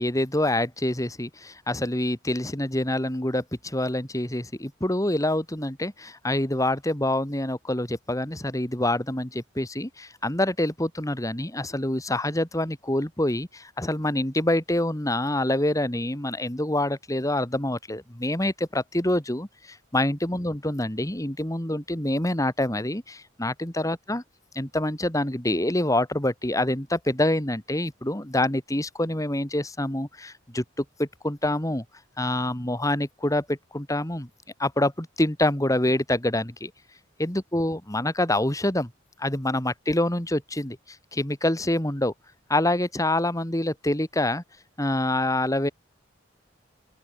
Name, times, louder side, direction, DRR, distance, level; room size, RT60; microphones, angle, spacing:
voice 1, 0.0-24.2 24.5-31.8 32.2-34.3 34.6-36.7 37.2-38.9 39.2-42.1 42.5-44.4 44.8-45.7, left 1 dB, 15° left, 2.7 m, -26 dB
open air
head